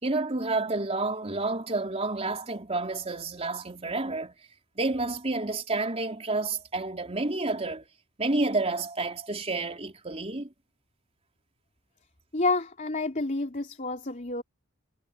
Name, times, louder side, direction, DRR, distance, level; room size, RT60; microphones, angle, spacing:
voice 1, 0.0-4.3 4.8-7.9 8.2-10.5, right 2 dB, 30° right, 3.7 m, -29 dB
voice 2, 12.3-14.4, left 3 dB, 35° left, 3.4 m, -29 dB
head